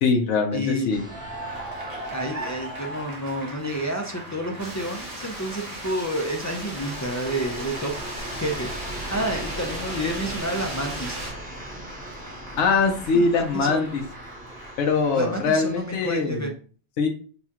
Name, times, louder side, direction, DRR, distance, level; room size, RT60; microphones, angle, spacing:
voice 1, 0.0-1.0 12.6-14.0 14.8-16.5 17.0-17.1, left 4 dB, 75° left, 2 dB, 1.0 m, -22 dB
voice 2, 0.5-1.1 2.1-7.9 8.4-8.7 9.1-11.2 13.1-13.9 15.1-16.5, right 1 dB, 25° left, 0 dB, 0.3 m, -29 dB
sound 1, 0.9-16.3, equal, 5° right, 1.0 m, -40 dB
Cheering / Applause, 1.0-15.9, right 2 dB, 35° right, 1.0 m, -41 dB
sound 2, 4.6-11.3, right 1 dB, 85° right, 2.4 m, -37 dB
6.9 x 2.3 x 2.9 m, 0.41 s
omnidirectional pair, 1.3 m